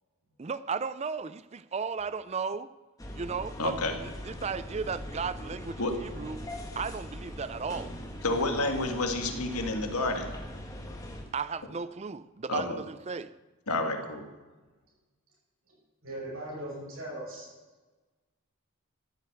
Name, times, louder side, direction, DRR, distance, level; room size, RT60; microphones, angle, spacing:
voice 1, 0.4-2.7 3.1-3.7 4.0-6.5 6.8-7.9 11.3-13.3, right 5 dB, 30° right, 0.4 m, -35 dB
sound 1, 3.0-11.2, equal, 15° left, 1.4 m, -41 dB
voice 2, 3.6-3.9 5.8-6.0 8.2-10.3 12.5-12.8 13.7-14.2, left 2 dB, 90° left, 1.8 m, -29 dB
voice 3, 16.0-17.5, right 1 dB, 70° right, 6.0 m, -39 dB
13.5 x 8.3 x 7.9 m
head